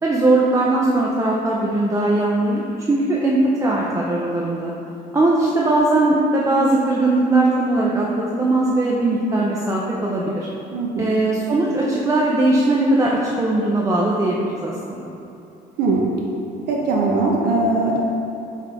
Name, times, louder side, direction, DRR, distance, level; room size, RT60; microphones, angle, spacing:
voice 1, 0.0-2.6 2.9-4.7 5.1-8.1 8.3-10.5 11.0-15.0, right 2 dB, 20° right, -4 dB, 0.4 m, -19 dB
voice 2, 10.7-11.1 15.8-16.1 16.7-18.0, right 3 dB, 75° right, -2 dB, 0.5 m, -20 dB
5.6 x 2.4 x 3.3 m, 2.8 s
cardioid pair, 110°, 17 cm